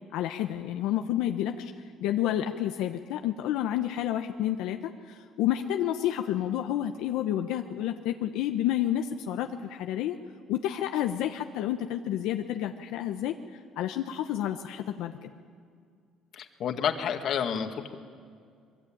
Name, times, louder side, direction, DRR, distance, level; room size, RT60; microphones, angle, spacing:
voice 1, 0.1-1.7 2.0-10.2 10.5-13.3 13.8-15.3, left 11 dB, 85° left, 5 dB, 1.0 m, -30 dB
voice 2, 16.3-17.9, left 8 dB, 50° left, 5 dB, 2.0 m, -30 dB
24.0 x 22.5 x 8.8 m, 2.2 s
cardioid pair, 145°, 0 cm